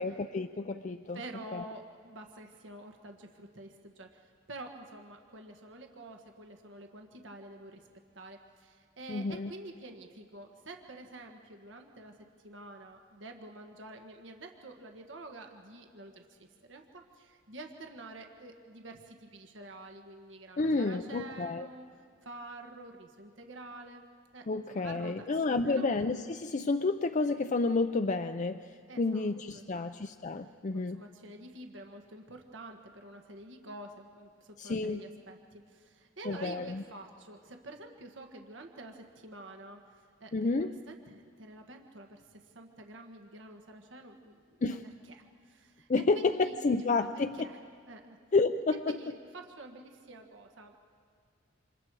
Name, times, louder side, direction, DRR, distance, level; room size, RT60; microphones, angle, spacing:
voice 1, 0.0-1.2 1.5-1.6 9.1-9.5 20.6-21.7 24.5-31.0 34.6-35.0 36.2-36.8 40.3-40.7 44.6-44.9 45.9-47.4 48.3-48.9, left 3 dB, 40° left, 7 dB, 0.5 m, -30 dB
voice 2, 1.1-7.8 8.1-12.1 12.4-21.9 22.2-24.0 24.3-25.9 28.9-29.3 29.5-29.9 30.7-39.8 40.2-40.3 40.6-44.4 45.1-45.2 45.4-45.9 46.1-47.6 47.9-48.2 48.9-50.8, right 2 dB, 75° right, 3 dB, 1.5 m, -48 dB
28.5 x 27.0 x 4.8 m, 2.1 s
head